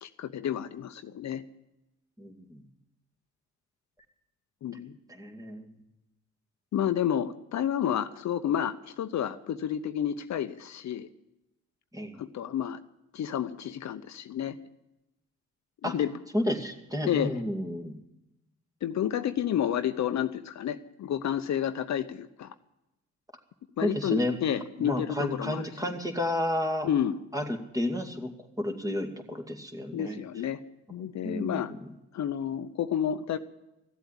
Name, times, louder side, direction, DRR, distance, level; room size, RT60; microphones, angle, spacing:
voice 1, 0.0-1.4 4.6-4.9 6.7-11.1 12.2-12.8 13.1-14.6 15.8-16.1 17.1-17.3 18.8-22.5 23.8-25.9 26.8-27.2 29.9-30.6 30.9-31.7 32.1-33.4, left 9 dB, 60° left, 10 dB, 0.8 m, -30 dB
voice 2, 2.2-2.6 5.1-5.7 11.9-12.2 15.8-15.9 16.3-17.9 23.8-24.4 24.8-26.9 27.3-28.3 28.6-30.2 31.2-31.8, left 1 dB, 10° right, 3 dB, 2.2 m, -31 dB
14.5 x 8.0 x 10.0 m, 0.93 s
cardioid pair, 80°, 31 cm